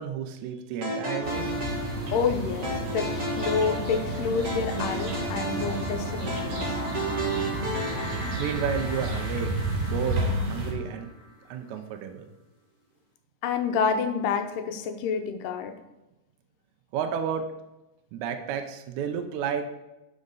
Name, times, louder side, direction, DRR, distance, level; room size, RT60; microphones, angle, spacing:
voice 1, 0.0-1.5 8.4-9.5 9.9-11.1 11.5-12.3 16.9-17.5 18.1-19.6, right 8 dB, 75° right, 6 dB, 1.8 m, -31 dB
sound 1, 0.8-11.1, right 1 dB, 30° right, 1.7 m, -34 dB
sound 2, 1.2-10.7, right 1 dB, 55° right, 4.1 m, -31 dB
voice 2, 2.1-6.8 13.4-15.7, left 6 dB, 75° left, 6 dB, 2.3 m, -28 dB
11.5 x 5.1 x 4.0 m, 0.99 s
omnidirectional pair, 4.0 m